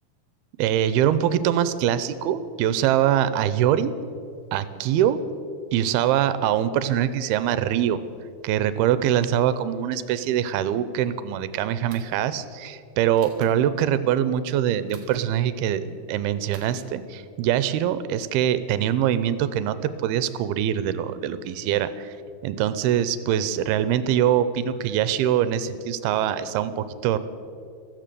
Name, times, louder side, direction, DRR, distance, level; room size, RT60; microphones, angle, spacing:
voice 1, 0.6-3.9 4.5-5.2 5.7-8.0 8.4-22.1 22.4-27.2, right 10 dB, 80° right, 14 dB, 2.5 m, -23 dB
sound 1, 11.9-12.2 13.2-13.5 14.9-15.2 16.5-16.8, right 5 dB, 35° right, 1.7 m, -46 dB
15.5 x 14.0 x 6.8 m, 2.5 s
omnidirectional pair, 4.6 m